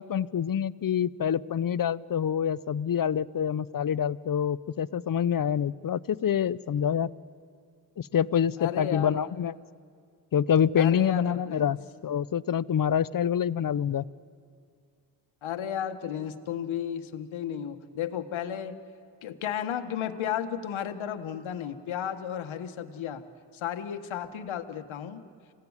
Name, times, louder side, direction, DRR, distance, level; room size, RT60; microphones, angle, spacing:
voice 1, 0.0-7.1 8.0-9.5 10.3-11.8 12.0-14.1, left 8 dB, 45° left, 19 dB, 0.7 m, -26 dB
voice 2, 8.6-9.1 10.8-11.7 15.4-18.8 19.2-23.2 23.5-25.2, left 9 dB, 75° left, 7 dB, 1.5 m, -33 dB
27.0 x 17.0 x 9.7 m, 2.1 s
supercardioid pair, 45°, 47 cm